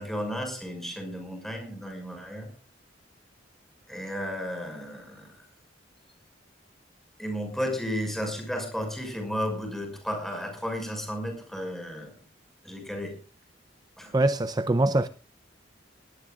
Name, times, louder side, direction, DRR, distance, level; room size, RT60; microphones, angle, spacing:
voice 1, 0.0-2.5 3.9-5.4 7.2-12.1 12.6-13.2 14.0-14.1, equal, ahead, 6.0 m, -33 dB
voice 2, 14.1-15.1, right 2 dB, 20° right, 0.6 m, -23 dB
21.0 x 18.0 x 2.4 m
head